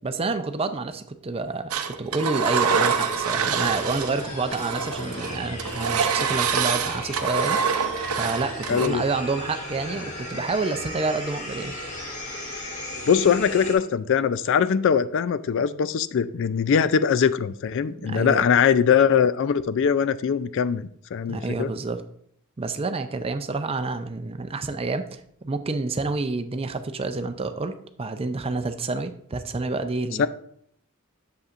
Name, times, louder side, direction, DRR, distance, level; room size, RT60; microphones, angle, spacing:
voice 1, 0.0-7.6 8.2-11.8 18.0-18.5 21.3-22.0 22.6-30.3, right 3 dB, 25° right, 9 dB, 0.5 m, -28 dB
Engine, 1.7-4.2 4.5-8.9, right 6 dB, 80° right, 0.6 m, -25 dB
sound 1, 2.7-13.7, left 1 dB, 35° left, 1.8 m, -36 dB
voice 2, 8.7-9.0 13.1-21.7 30.2-30.3, left 7 dB, 60° left, 15 dB, 0.3 m, -21 dB
7.9 x 6.9 x 2.5 m, 0.67 s
head